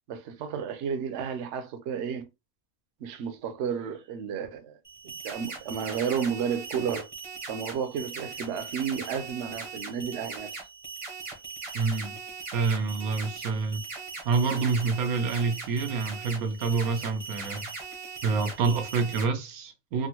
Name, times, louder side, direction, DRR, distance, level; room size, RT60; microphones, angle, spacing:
voice 1, 0.1-2.3 3.0-4.8 5.0-7.1 7.5-10.5, right 7 dB, 65° right, 0.8 m, -32 dB
sound 1, 4.8-19.2, right 4 dB, 30° right, 0.6 m, -40 dB
voice 2, 11.7-12.2 12.5-13.8 14.2-17.6 18.2-20.1, right 4 dB, 90° right, 1.2 m, -27 dB
3.5 x 2.0 x 2.9 m
omnidirectional pair, 1.5 m